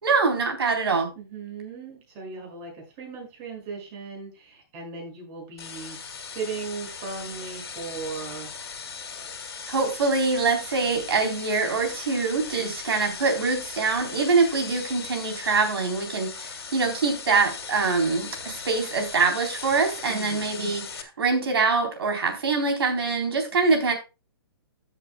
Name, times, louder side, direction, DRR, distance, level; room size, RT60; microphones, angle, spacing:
voice 1, 0.0-1.1 9.7-23.9, right 4 dB, 75° right, 3 dB, 4.0 m, -24 dB
voice 2, 1.1-8.5 12.5-12.7 20.1-20.4, right 4 dB, 35° right, 0 dB, 6.6 m, -37 dB
sound 1, 5.6-21.0, left 5 dB, 85° left, 2.5 m, -38 dB
14.5 x 8.0 x 2.3 m, 0.30 s
hypercardioid pair, 140°, 13 cm